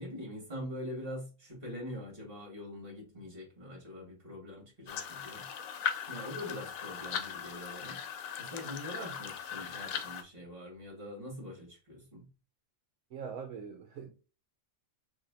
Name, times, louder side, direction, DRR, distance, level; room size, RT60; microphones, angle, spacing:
voice 1, 0.0-5.5 6.1-8.0 8.4-12.3, left 1 dB, 40° right, 2.4 m, -43 dB
sound 1, 4.9-10.2, left 8 dB, 80° left, 1.1 m, -39 dB
voice 2, 13.1-14.1, right 6 dB, 80° right, 1.2 m, -42 dB
6.2 x 2.7 x 2.8 m
omnidirectional pair, 1.4 m